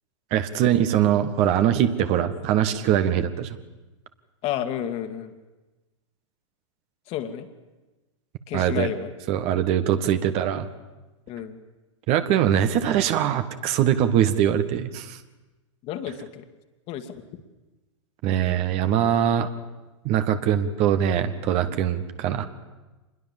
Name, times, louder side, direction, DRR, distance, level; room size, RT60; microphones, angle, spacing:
voice 1, 0.3-3.6 8.5-8.9 9.3-10.7 12.1-15.2 18.2-19.5 20.1-22.5, right 10 dB, 40° right, 9 dB, 1.7 m, -22 dB
voice 2, 4.4-5.3 7.1-7.5 8.5-9.1 11.3-11.6 12.5-12.9 15.8-16.4 16.9-17.2, left 10 dB, 40° left, 7 dB, 2.3 m, -31 dB
26.5 x 21.0 x 7.4 m, 1.1 s
figure-of-eight pair, 95°, 16 cm